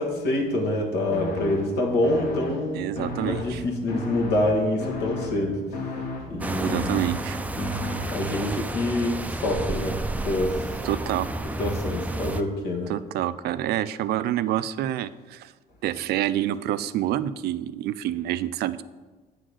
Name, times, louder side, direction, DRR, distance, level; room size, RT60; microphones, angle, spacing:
voice 1, 0.0-2.9 3.2-5.6 6.3-6.8 8.1-10.0 10.3-10.8 11.6-12.9, left 1 dB, 75° left, 2 dB, 1.6 m, -26 dB
sound 1, 1.1-8.5, left 1 dB, 60° left, 1.5 m, -34 dB
voice 2, 2.7-3.6 6.6-7.4 10.8-11.3 12.9-15.5 15.8-18.8, right 12 dB, 70° right, 14 dB, 0.4 m, -27 dB
sound 2, 6.4-12.4, right 2 dB, 10° right, 0.4 m, -31 dB
8.4 x 3.9 x 6.3 m, 1.3 s
cardioid pair, 110°, 17 cm